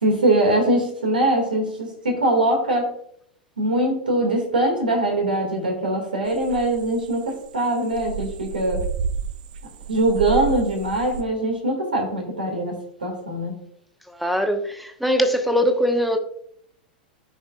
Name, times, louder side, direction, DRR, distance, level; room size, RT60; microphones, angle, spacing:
voice 1, 0.0-2.9 3.6-8.9 9.9-13.6, right 1 dB, 75° right, 2 dB, 2.6 m, -22 dB
sound 1, 6.3-11.2, right 6 dB, 60° right, 0.6 m, -31 dB
voice 2, 14.1-16.2, equal, ahead, 6 dB, 1.1 m, -21 dB
14.0 x 5.0 x 2.6 m, 0.68 s
figure-of-eight pair, 95°, 5 cm